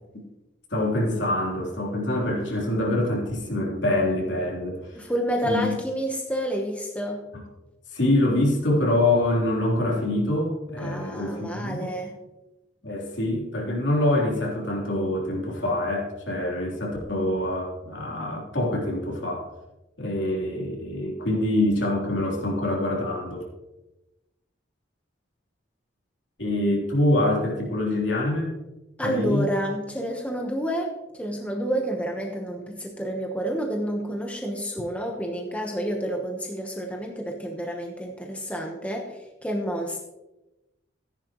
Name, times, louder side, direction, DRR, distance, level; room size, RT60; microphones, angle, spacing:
voice 1, 0.7-5.0 5.4-5.8 7.9-11.9 12.8-19.5 20.0-23.5 26.4-28.5 29.0-29.5, left 1 dB, 70° left, -2 dB, 3.5 m, -25 dB
voice 2, 5.0-7.2 10.8-12.2 29.0-40.0, equal, 5° left, 0 dB, 1.1 m, -29 dB
14.5 x 10.5 x 3.1 m, 1.0 s
head